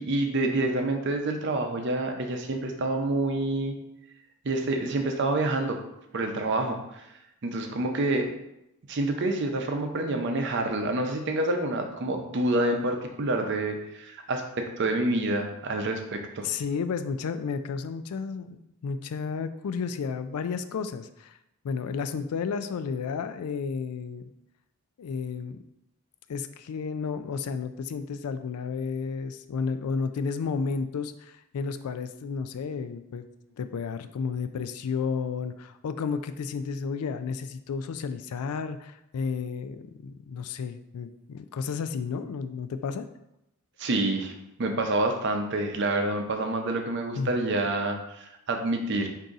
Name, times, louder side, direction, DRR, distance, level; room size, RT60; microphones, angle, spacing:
voice 1, 0.0-3.7 4.4-5.8 6.1-7.0 7.4-8.3 8.9-16.5 43.8-44.3 44.6-49.1, right 2 dB, 50° right, 4 dB, 0.6 m, -27 dB
voice 2, 16.4-21.4 21.6-24.2 25.0-25.6 26.3-33.3 33.6-43.1 47.1-47.3, left 5 dB, 85° left, 11 dB, 0.4 m, -32 dB
3.9 x 2.7 x 4.7 m, 0.85 s
head